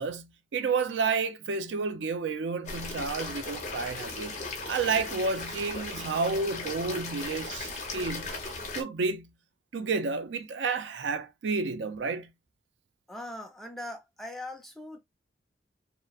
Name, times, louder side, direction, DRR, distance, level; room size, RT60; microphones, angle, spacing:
voice 1, 0.0-4.3 4.7-8.4 8.7-9.3 9.7-12.3, right 4 dB, 80° right, 0.4 m, -30 dB
sound 1, 2.6-8.8, left 3 dB, 40° left, 0.8 m, -37 dB
voice 2, 13.1-15.0, left 1 dB, ahead, 0.5 m, -40 dB
2.8 x 2.1 x 2.3 m
head